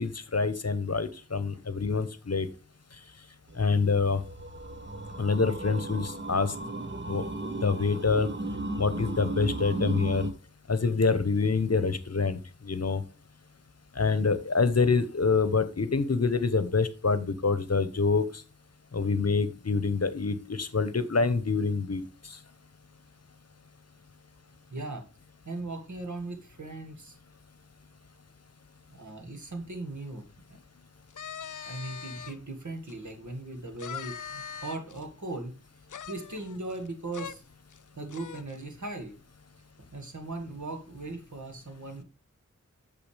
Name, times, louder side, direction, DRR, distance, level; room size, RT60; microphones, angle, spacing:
voice 1, 0.0-2.5 3.6-4.2 5.2-6.5 7.1-7.2 7.6-8.3 8.8-10.3 10.7-13.0 14.0-18.3 18.9-22.0, left 4 dB, 55° left, 13 dB, 0.9 m, -26 dB
sound 1, 3.5-10.3, right 2 dB, 40° right, 1.1 m, -35 dB
voice 2, 24.7-25.1 25.5-27.2 28.9-30.3 31.6-35.5 36.1-37.4 38.0-39.1 39.9-42.0, right 2 dB, 70° right, 5 dB, 1.9 m, -38 dB
sound 2, 31.1-32.4 32.9-33.0 33.8-35.0 35.9-36.9 37.1-37.3 37.7-37.8 38.1-38.6, left 7 dB, 80° left, 0.5 m, -41 dB
8.6 x 6.7 x 3.3 m, 0.33 s
wide cardioid pair, 55°, 30 cm